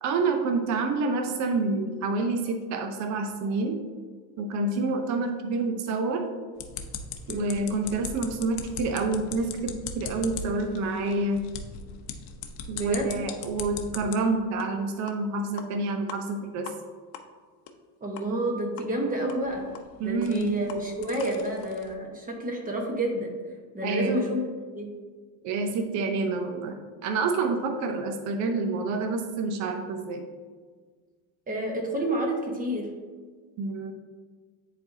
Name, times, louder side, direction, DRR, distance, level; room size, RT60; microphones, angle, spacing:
voice 1, 0.0-3.8 4.4-6.2 7.3-11.5 12.7-16.7 20.0-20.5 23.8-24.2 25.4-26.8 27.0-30.2 33.6-33.9, right 3 dB, 40° right, 5 dB, 0.6 m, -28 dB
sound 1, 6.6-14.1 14.6-14.7 15.1-15.2 15.6-15.7 16.1-16.2 16.7-16.8 17.1-17.2 17.7-17.8 18.2-18.3 18.8-18.9 19.3-21.9, left 6 dB, 70° left, 0.8 m, -39 dB
voice 2, 12.7-13.2 18.0-19.6 20.0-23.3 23.7-24.4 24.7-24.9 31.5-32.9, right 1 dB, 20° right, 0 dB, 1.2 m, -29 dB
10.0 x 4.1 x 2.7 m, 1.5 s
supercardioid pair, 130°, 45 cm